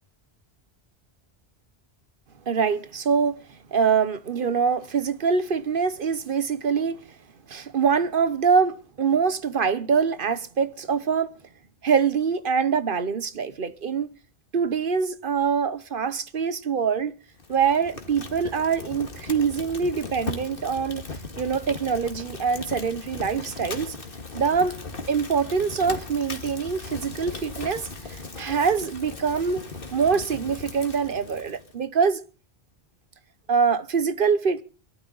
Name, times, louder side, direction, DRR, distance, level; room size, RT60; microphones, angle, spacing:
voice 1, 2.5-3.4 3.7-7.0 7.5-11.3 11.8-14.1 14.5-17.1 17.5-21.0 21.4-24.0 24.3-24.8 25.1-29.6 29.9-32.2 33.5-34.6, right 6 dB, 55° right, 1.0 m, -24 dB
Fire, 17.3-31.7, left 3 dB, 55° left, 2.0 m, -38 dB
23.5 x 12.5 x 3.9 m
omnidirectional pair, 1.1 m